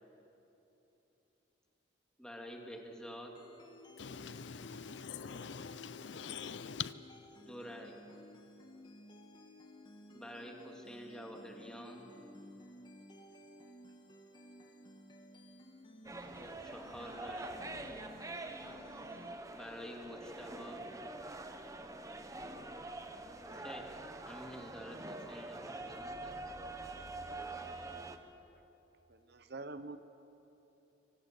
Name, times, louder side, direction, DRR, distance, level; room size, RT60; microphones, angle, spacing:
voice 1, 2.2-3.3 7.4-8.0 10.1-12.1 16.6-17.5 19.5-20.8 23.5-23.9 24.2-26.6, equal, 5° left, 2.1 m, -48 dB
sound 1, 3.4-19.4, left 1 dB, 25° left, 1.4 m, -55 dB
voice 2, 4.0-6.9, left 7 dB, 70° left, 0.5 m, -43 dB
sound 2, 16.0-28.2, right 2 dB, 15° right, 0.9 m, -45 dB
voice 3, 29.1-30.0, right 3 dB, 60° right, 0.9 m, -45 dB
24.5 x 17.5 x 6.7 m
head